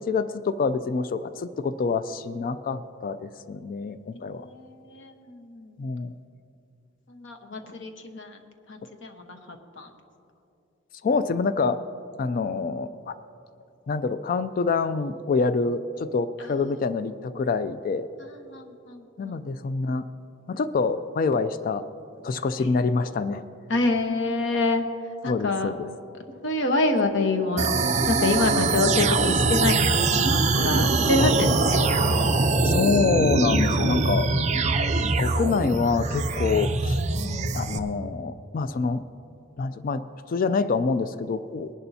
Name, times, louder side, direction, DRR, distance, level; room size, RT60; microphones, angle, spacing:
voice 1, 0.0-4.5 5.8-6.1 11.0-11.8 12.2-13.2 13.9-18.1 19.2-20.1 20.5-21.9 22.2-23.4 25.3-25.9 31.2-31.3 32.6-34.3 35.2-37.0 37.5-39.0 39.6-41.7, left 4 dB, 45° left, 13 dB, 0.3 m, -26 dB
voice 2, 4.3-5.8 7.1-8.4 8.7-9.9 18.2-19.4 22.6-22.7 23.7-24.8 25.2-25.7 26.4-27.7 28.0-32.3, left 2 dB, 70° left, 5 dB, 1.1 m, -27 dB
sound 1, 27.6-37.8, right 3 dB, 35° right, 0.6 m, -23 dB
20.0 x 11.0 x 2.7 m, 2.6 s
head